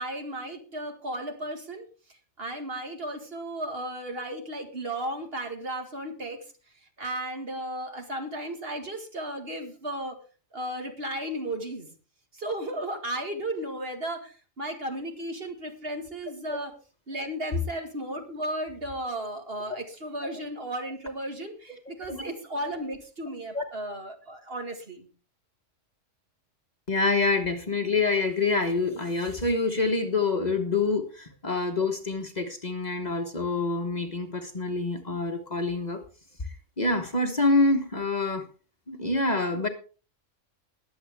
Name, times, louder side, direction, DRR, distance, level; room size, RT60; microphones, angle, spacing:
voice 1, 0.0-1.9 2.4-6.4 7.0-10.2 10.5-11.9 12.3-16.7 17.1-25.1 35.5-35.6, right 1 dB, 50° right, 4 dB, 2.2 m, -34 dB
voice 2, 26.9-36.0 36.8-38.5 38.9-39.7, left 3 dB, 35° left, 5 dB, 1.3 m, -26 dB
20.5 x 8.0 x 3.5 m, 0.36 s
omnidirectional pair, 1.3 m